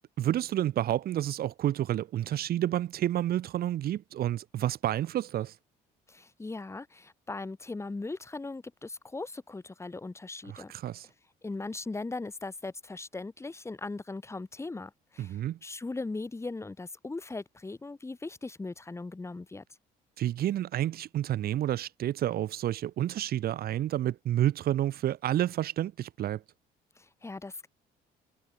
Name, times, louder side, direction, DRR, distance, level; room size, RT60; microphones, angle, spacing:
voice 1, 0.2-5.5 10.5-11.1 15.2-15.6 20.2-26.4, right 12 dB, 65° right, 4.7 m, -30 dB
voice 2, 6.1-10.7 11.4-19.6 27.0-27.7, left 3 dB, 15° left, 3.9 m, -39 dB
cardioid pair, 110°, 17 cm